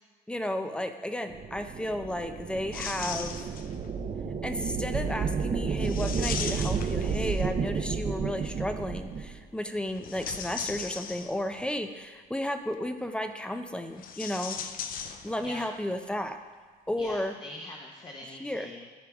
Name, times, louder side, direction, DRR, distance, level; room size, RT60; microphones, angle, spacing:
voice 1, 0.3-3.5 4.4-14.6 15.2-16.4 16.9-17.3 18.4-18.7, left 1 dB, 5° left, 7 dB, 0.6 m, -33 dB
sound 1, 1.3-9.4, right 5 dB, 40° right, 0.7 m, -31 dB
sound 2, 2.7-3.9 5.8-7.7 9.9-11.6 13.9-15.7 15.9-16.0 17.0-17.2, left 7 dB, 60° left, 0.6 m, -38 dB
voice 2, 17.0-18.9, left 2 dB, 30° left, -2 dB, 1.1 m, -43 dB
13.5 x 4.7 x 3.6 m, 1.5 s
cardioid pair, 110°, 17 cm